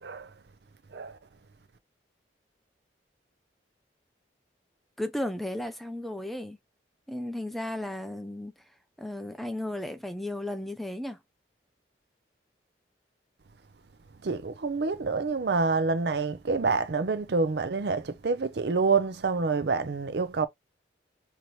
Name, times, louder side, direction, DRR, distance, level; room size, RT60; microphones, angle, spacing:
voice 1, 5.0-6.6 7.1-8.5 9.0-11.2, left 1 dB, ahead, 0.5 m, -34 dB
voice 2, 14.2-20.5, right 4 dB, 65° right, 0.5 m, -27 dB
4.1 x 2.9 x 3.0 m
head